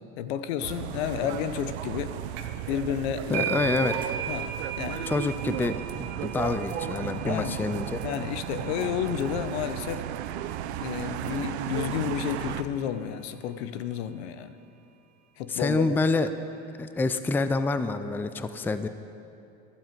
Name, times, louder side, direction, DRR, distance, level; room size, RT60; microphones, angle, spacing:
voice 1, 0.2-2.2 2.7-3.5 4.3-5.1 7.2-7.6 8.0-10.1 10.8-14.5 15.4-15.9, left 9 dB, 80° left, 12 dB, 0.8 m, -31 dB
sound 1, 0.6-12.6, right 11 dB, 90° right, 0.7 m, -34 dB
sound 2, 2.4-2.7 2.9-10.3, right 9 dB, 55° right, 1.2 m, -37 dB
voice 2, 3.3-3.9 5.1-8.0 15.5-16.3 16.8-18.9, left 3 dB, 5° left, 11 dB, 0.4 m, -27 dB
15.0 x 12.5 x 4.5 m, 2.7 s
supercardioid pair, 105°, 32 cm